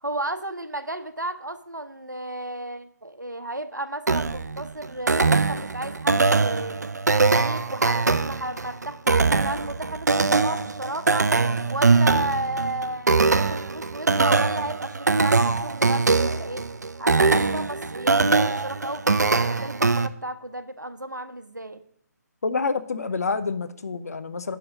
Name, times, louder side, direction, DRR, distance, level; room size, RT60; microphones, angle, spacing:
voice 1, 0.0-6.9 7.2-11.3 11.6-16.6 17.0-21.8, right 1 dB, 85° right, 10 dB, 1.0 m, -33 dB
sound 1, 4.1-20.1, right 4 dB, 70° right, 0.7 m, -22 dB
voice 2, 22.4-24.6, left 4 dB, 60° left, 11 dB, 0.8 m, -27 dB
10.0 x 4.7 x 6.3 m, 0.65 s
figure-of-eight pair, 145°, 10 cm